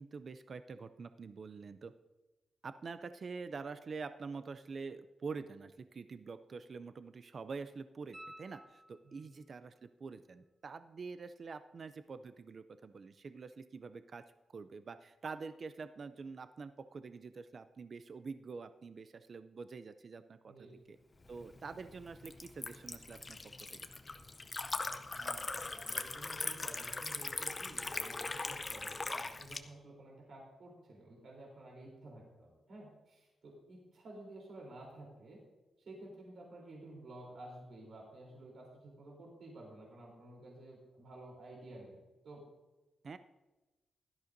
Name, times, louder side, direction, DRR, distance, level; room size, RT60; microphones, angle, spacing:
voice 1, 0.0-1.9 2.6-14.2 14.5-20.7 21.3-23.9 43.0-43.2, right 4 dB, 40° right, 11 dB, 0.4 m, -46 dB
sound 1, 8.1-9.5 12.2-12.3, right 1 dB, 20° right, 4.8 m, -54 dB
voice 2, 9.0-9.4 20.4-20.8 25.1-35.4 35.8-42.0 42.2-42.4, right 1 dB, 55° right, -2 dB, 3.4 m, -52 dB
Liquid, 21.2-29.6, left 3 dB, 20° left, 0.6 m, -41 dB
16.5 x 12.5 x 2.6 m, 1.1 s
wide cardioid pair, 160°, 0 cm